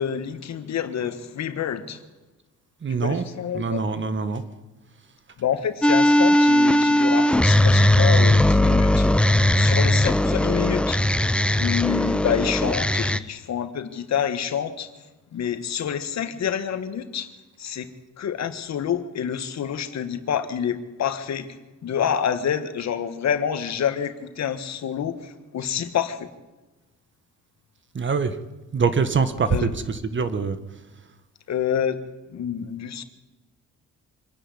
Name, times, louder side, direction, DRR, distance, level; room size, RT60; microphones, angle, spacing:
voice 1, 0.0-2.0 3.0-3.8 5.4-11.0 11.6-14.9 15.3-17.3 17.6-17.9 18.2-21.5 21.8-26.3 29.5-29.7 31.5-32.0 32.3-33.0, left 8 dB, 60° left, 9 dB, 1.7 m, -27 dB
voice 2, 2.8-3.3 3.5-4.4 27.9-28.4 28.7-30.6, right 5 dB, 40° right, 11 dB, 1.7 m, -24 dB
sound 1, 5.8-13.2, left 1 dB, 5° left, 0.7 m, -18 dB
26.0 x 10.0 x 9.9 m, 1.1 s
cardioid pair, 90°, 30 cm